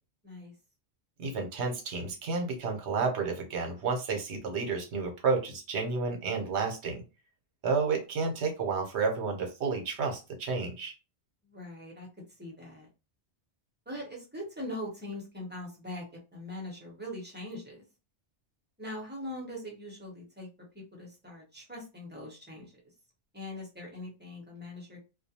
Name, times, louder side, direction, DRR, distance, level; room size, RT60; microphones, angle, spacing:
voice 1, 1.2-7.0 7.6-10.9, right 4 dB, 80° right, 3 dB, 1.0 m, -31 dB
voice 2, 11.4-12.1 12.4-12.9 13.9-16.0 16.3-17.8 18.8-20.5 20.7-22.7 23.3-25.0, left 1 dB, 10° right, -2 dB, 0.7 m, -41 dB
2.4 x 2.2 x 2.7 m, 0.30 s
omnidirectional pair, 1.1 m